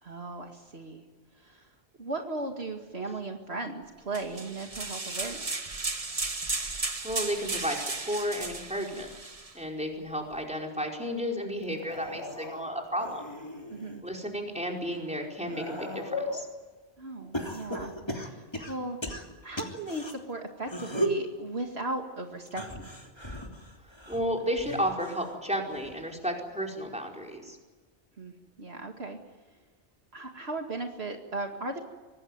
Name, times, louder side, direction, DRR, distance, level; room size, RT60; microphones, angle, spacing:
voice 1, 0.0-1.0 1.4-1.7 2.0-5.5 13.7-14.0 17.0-17.9 18.2-22.9 28.2-29.2 30.1-31.8, right 2 dB, 65° right, 3 dB, 2.4 m, -37 dB
sound 1, 4.1-9.5, right 3 dB, 30° right, 1.5 m, -35 dB
voice 2, 7.0-9.1 9.5-13.2 14.0-16.5 24.1-27.6, equal, 5° right, 1 dB, 4.8 m, -33 dB
sound 2, 11.7-14.0 14.5-16.5 17.3-20.1 20.6-21.3 22.5-25.3 25.7-26.1 27.3-27.4, equal, 20° left, 3.2 m, -36 dB
25.0 x 19.0 x 9.5 m, 1.3 s
omnidirectional pair, 1.2 m